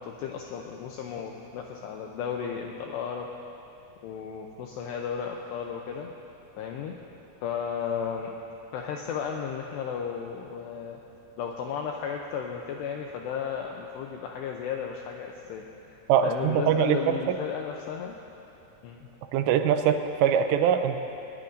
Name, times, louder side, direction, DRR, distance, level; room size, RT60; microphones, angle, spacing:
voice 1, 0.0-3.3 4.0-6.1 6.6-7.0 7.4-8.3 8.7-11.0 11.4-18.2 18.8-19.1, left 7 dB, 85° left, 1 dB, 2.4 m, -34 dB
voice 2, 16.1-17.2 19.3-21.0, right 8 dB, 90° right, 7 dB, 3.3 m, -23 dB
21.0 x 20.0 x 2.6 m, 2.8 s
omnidirectional pair, 5.7 m